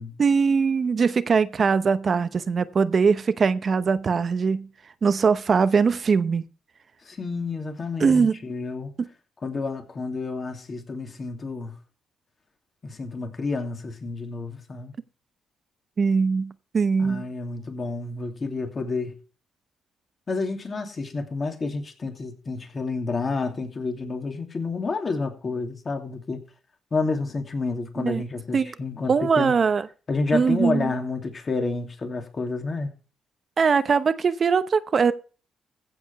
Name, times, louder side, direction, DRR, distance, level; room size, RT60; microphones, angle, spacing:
voice 1, 0.2-4.7 5.0-6.4 8.0-8.4 9.0-9.1 16.0-17.2 28.0-28.2 28.5-28.7 29.1-29.9 30.3-31.0 33.6-35.1, right 5 dB, 45° right, 0.9 m, -21 dB
voice 2, 7.0-8.9 9.4-11.8 12.8-14.9 17.0-19.1 20.3-26.4 26.9-29.5 30.1-32.9, left 3 dB, 35° left, 2.7 m, -29 dB
15.5 x 5.2 x 5.9 m
cardioid pair, 90°, 0 cm